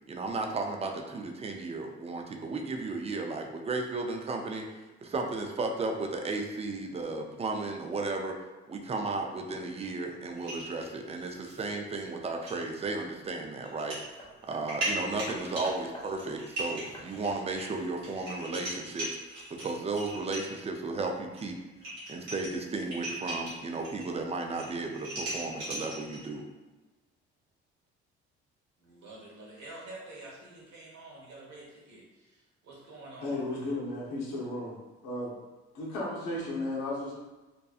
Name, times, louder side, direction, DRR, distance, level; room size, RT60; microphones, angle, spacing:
voice 1, 0.1-4.6 5.0-8.3 8.7-14.0 14.5-19.1 19.5-21.6 22.1-26.4, right 3 dB, 20° right, 3 dB, 0.4 m, -34 dB
sound 1, 10.4-11.6 12.0-12.1 12.5-12.6 13.6-14.0 14.4-20.6 21.4-21.5 21.7-24.1 24.4-26.3, right 1 dB, 90° right, 1.1 m, -38 dB
Hammer, 14.2-18.9 19.8-19.9, equal, 15° left, 0.7 m, -48 dB
voice 2, 28.8-33.7, right 2 dB, 65° right, -5 dB, 1.1 m, -48 dB
voice 3, 33.2-34.8 35.0-35.3 35.7-37.1, left 2 dB, 75° left, -5 dB, 0.8 m, -34 dB
2.7 x 2.2 x 2.4 m, 1.2 s
supercardioid pair, 65°, 31 cm